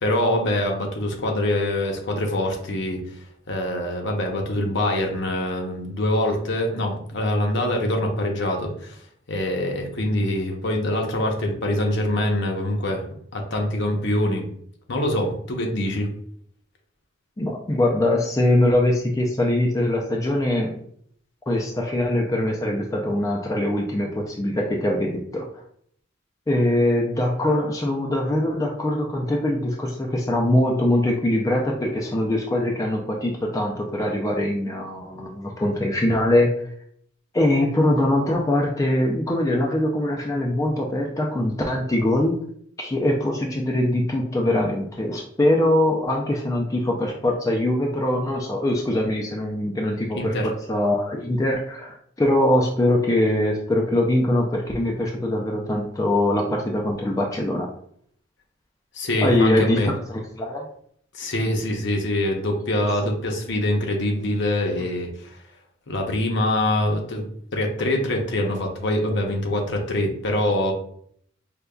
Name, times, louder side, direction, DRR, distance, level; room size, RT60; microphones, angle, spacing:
voice 1, 0.0-3.0 3.5-9.0 9.3-13.0 13.3-14.5 14.9-16.1 50.1-50.5 58.9-59.9 61.1-65.4 65.9-67.2 67.5-70.7, left 1 dB, 60° left, 2 dB, 0.7 m, -24 dB
voice 2, 17.4-20.7 21.5-25.6 26.5-36.7 37.3-42.4 42.8-57.7 59.2-60.7, left 1 dB, 15° left, 0 dB, 0.4 m, -22 dB
5.0 x 2.2 x 2.3 m, 0.64 s
head